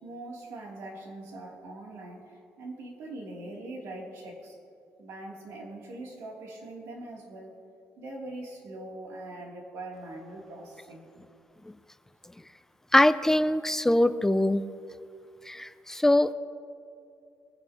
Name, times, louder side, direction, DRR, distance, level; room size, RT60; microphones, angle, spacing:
voice 1, 0.0-4.5 5.0-7.6 8.0-11.1, right 2 dB, 80° right, -2 dB, 2.8 m, -42 dB
voice 2, 12.9-14.6 15.5-16.3, left 1 dB, 10° left, 12 dB, 0.4 m, -22 dB
23.5 x 10.0 x 2.9 m, 2.4 s
cardioid pair, 115°, 5 cm